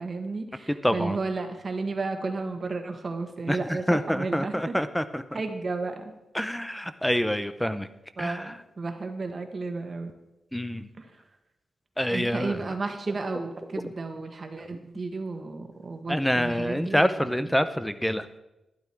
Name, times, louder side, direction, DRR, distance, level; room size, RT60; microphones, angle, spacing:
voice 1, 0.0-4.7 5.3-6.1 8.2-10.1 11.0-11.1 12.1-17.4, right 3 dB, 35° right, 6 dB, 1.4 m, -33 dB
voice 2, 0.8-1.2 3.5-3.6 3.9-5.4 6.3-7.9 8.2-8.5 10.5-10.9 12.0-12.6 16.1-18.4, equal, 5° left, 11 dB, 0.6 m, -26 dB
12.0 x 11.0 x 4.5 m, 0.96 s
wide cardioid pair, 140°, 0 cm